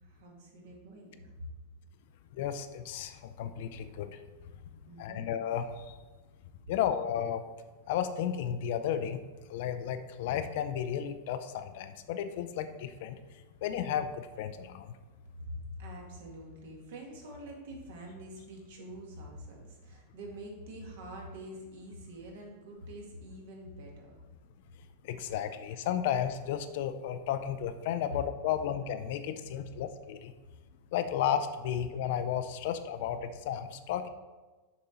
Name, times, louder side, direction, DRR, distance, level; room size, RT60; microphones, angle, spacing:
voice 1, 0.1-1.3 4.9-5.3 15.5-24.1, equal, 60° right, 0 dB, 2.0 m, -46 dB
voice 2, 2.4-4.2 5.0-5.9 6.7-7.4 7.9-9.2 9.5-13.2 13.6-14.9 25.0-30.3 30.9-34.1, left 9 dB, 50° left, 10 dB, 0.5 m, -33 dB
6.8 x 6.0 x 3.9 m, 1.2 s
supercardioid pair, 175°, 0 cm